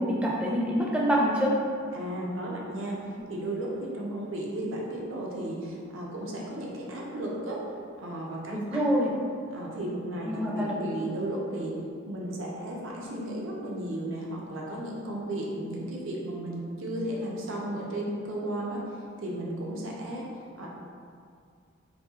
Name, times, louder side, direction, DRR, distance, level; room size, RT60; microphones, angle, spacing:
voice 1, 0.0-1.5 8.5-9.1 10.3-10.8, equal, 5° right, -4 dB, 0.3 m, -26 dB
voice 2, 1.9-7.6 8.0-9.0 9.5-11.7 12.1-18.9 19.2-20.3 20.6-20.7, right 1 dB, 80° right, -3 dB, 0.6 m, -34 dB
4.2 x 2.7 x 2.3 m, 2.2 s
head